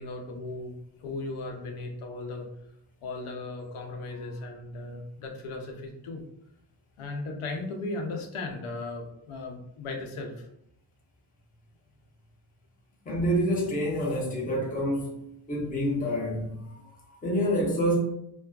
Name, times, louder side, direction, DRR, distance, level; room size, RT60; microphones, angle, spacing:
voice 1, 0.0-2.5 3.0-6.2 7.0-10.5, left 2 dB, 80° left, 0.6 m, -37 dB
voice 2, 13.1-15.1 15.5-18.0, equal, 15° left, 0.5 m, -27 dB
2.4 x 2.3 x 2.2 m
wide cardioid pair, 140°, 50 cm